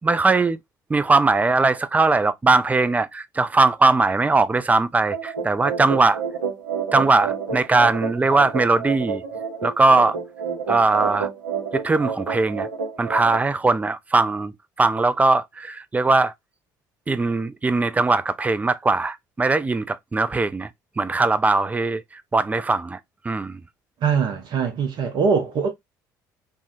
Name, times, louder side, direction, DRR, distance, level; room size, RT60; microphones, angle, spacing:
voice 1, 0.0-0.6 0.9-6.2 6.9-9.2 9.6-10.2 10.7-11.3 11.7-12.7 13.0-16.3 17.1-20.7 21.0-22.0 22.3-23.0 23.2-23.6, right 3 dB, 15° right, 0.4 m, -20 dB
sound 1, 5.1-13.3, right 6 dB, 80° right, 0.8 m, -29 dB
voice 2, 24.0-25.7, right 5 dB, 50° right, 0.8 m, -22 dB
3.5 x 2.2 x 2.5 m
figure-of-eight pair, 55°, 10 cm